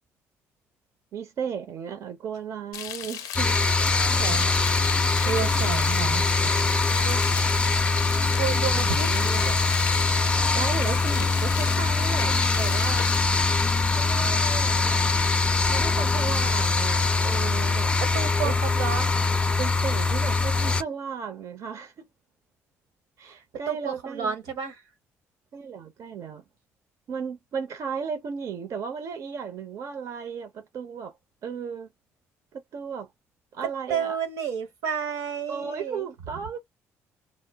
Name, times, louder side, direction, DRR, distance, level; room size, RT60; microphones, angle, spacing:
voice 1, 1.1-3.6 5.2-6.1 6.9-7.1 8.5-9.6 10.5-13.1 14.0-15.0 15.7-17.9 18.4-18.6 19.6-22.1 23.2-24.3 25.5-26.4 27.1-31.1 31.4-31.9 32.5-33.1 33.5-34.2 35.5-36.6, right 6 dB, 60° right, 0.6 m, -35 dB
Frying (food), 2.7-13.2, left 11 dB, 80° left, 0.4 m, -37 dB
sound 1, 3.3-20.8, left 3 dB, 20° left, 0.4 m, -23 dB
voice 2, 4.2-4.5 5.2-6.3 7.0-7.4 8.4-9.1 18.0-19.2 23.7-24.8 33.9-36.1, right 7 dB, 90° right, 1.0 m, -31 dB
2.1 x 2.0 x 3.4 m
supercardioid pair, 75°, 6 cm